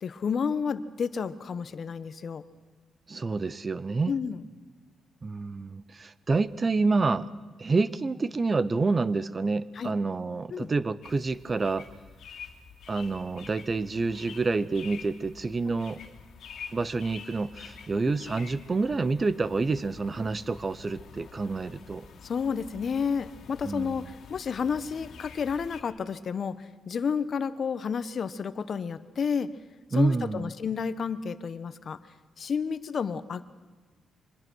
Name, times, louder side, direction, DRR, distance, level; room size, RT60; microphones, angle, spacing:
voice 1, 0.0-2.4 4.1-4.4 9.7-9.9 10.5-10.7 18.1-18.2 22.2-29.5 29.9-32.0 32.4-33.4, left 6 dB, 45° left, 13 dB, 1.0 m, -31 dB
voice 2, 3.1-4.1 5.2-7.3 7.6-11.9 12.9-16.0 16.7-22.1 23.6-24.1 29.9-30.5, right 3 dB, 30° right, 17 dB, 0.7 m, -28 dB
sound 1, 11.0-25.8, left 6 dB, 65° left, 2.3 m, -48 dB
25.0 x 20.5 x 6.3 m, 1.4 s
cardioid pair, 120°, 0 cm